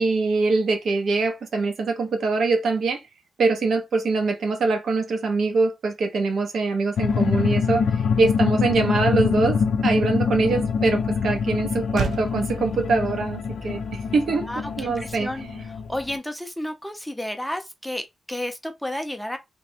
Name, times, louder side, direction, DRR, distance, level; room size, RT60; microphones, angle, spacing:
voice 1, 0.0-3.0 3.4-7.9 8.2-14.5 14.8-15.6, right 3 dB, 70° right, 0.9 m, -23 dB
sound 1, 7.0-16.2, left 6 dB, 70° left, 0.4 m, -25 dB
Motor vehicle (road), 11.9-16.5, right 6 dB, 90° right, 0.5 m, -40 dB
voice 2, 14.4-15.4 15.9-19.4, left 1 dB, 5° left, 0.5 m, -31 dB
3.4 x 2.1 x 4.1 m
wide cardioid pair, 145°, 0 cm